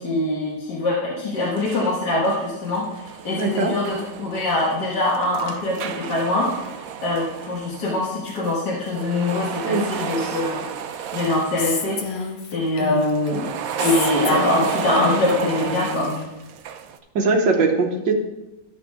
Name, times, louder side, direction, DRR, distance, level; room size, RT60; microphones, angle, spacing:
voice 1, 0.0-6.5 7.0-10.6 11.1-12.2 12.5-13.5 13.8-16.1, left 2 dB, 65° left, -6 dB, 2.2 m, -23 dB
sound 1, 1.4-1.9 2.2-8.5 8.8-12.2 13.0-17.0, right 8 dB, 65° right, 0.9 m, -32 dB
voice 2, 3.4-3.7 9.6-9.9 17.1-18.1, right 3 dB, 85° right, 3 dB, 1.6 m, -20 dB
Female speech woman speaking, 11.6-13.3 13.8-16.3, left 5 dB, 45° left, 0.9 m, -29 dB
12.5 x 6.2 x 3.5 m, 0.99 s
omnidirectional pair, 1.9 m